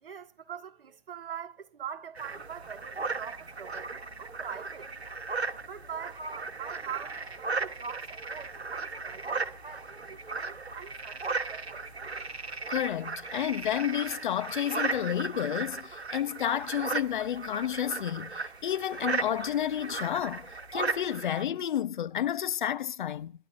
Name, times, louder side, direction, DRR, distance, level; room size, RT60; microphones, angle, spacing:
voice 1, 0.0-4.9 5.6-11.8, right 7 dB, 60° right, 1.7 m, -43 dB
sound 1, 2.1-21.4, right 4 dB, 85° right, 1.3 m, -36 dB
voice 2, 12.7-23.3, left 10 dB, 50° left, 0.7 m, -31 dB
26.5 x 12.5 x 2.7 m
figure-of-eight pair, 125°, 31 cm